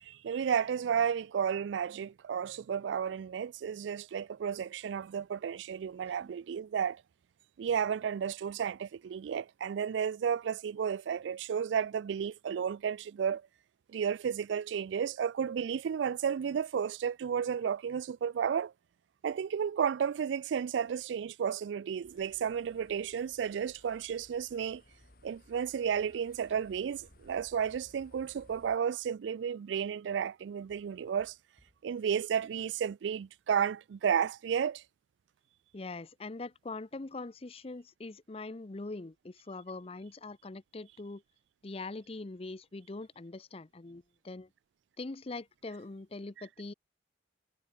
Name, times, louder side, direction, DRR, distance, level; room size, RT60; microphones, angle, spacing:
voice 1, 0.0-7.0 7.6-13.4 13.9-18.7 19.2-24.8 25.2-31.3 31.8-34.8, right 7 dB, 90° right, 0.3 m, -32 dB
sound 1, 22.0-28.8, left 1 dB, 55° left, 4.2 m, -61 dB
sound 2, 27.8-28.9 30.7-31.9, equal, 30° right, 3.7 m, -68 dB
voice 2, 35.7-41.2 41.6-44.5 45.0-46.7, left 3 dB, 35° left, 0.6 m, -42 dB
head